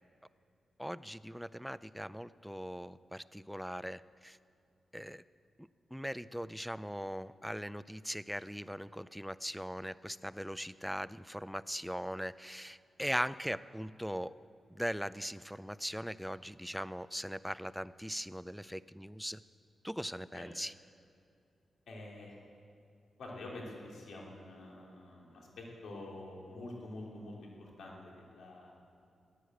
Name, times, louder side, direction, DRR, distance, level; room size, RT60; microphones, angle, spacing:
voice 1, 0.8-4.4 4.9-5.2 5.6-14.3 14.7-19.4 19.8-20.7, equal, ahead, 17 dB, 0.4 m, -40 dB
voice 2, 21.9-22.3 23.2-28.7, left 2 dB, 85° left, -2 dB, 3.0 m, -47 dB
15.0 x 10.0 x 7.8 m, 2.4 s
cardioid pair, 70°, 0 cm